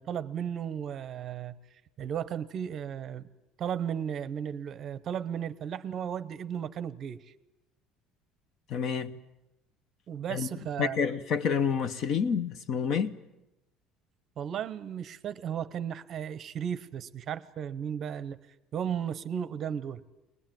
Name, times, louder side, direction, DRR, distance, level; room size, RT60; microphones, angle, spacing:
voice 1, 0.0-1.6 2.0-3.3 3.6-7.2 10.1-11.0 14.4-18.5 18.7-20.0, right 8 dB, 35° right, 0.8 m, -35 dB
voice 2, 8.7-9.1 10.3-10.5 10.8-13.2, left 6 dB, 40° left, 0.9 m, -28 dB
22.5 x 20.5 x 9.1 m
cardioid pair, 170°, 0 cm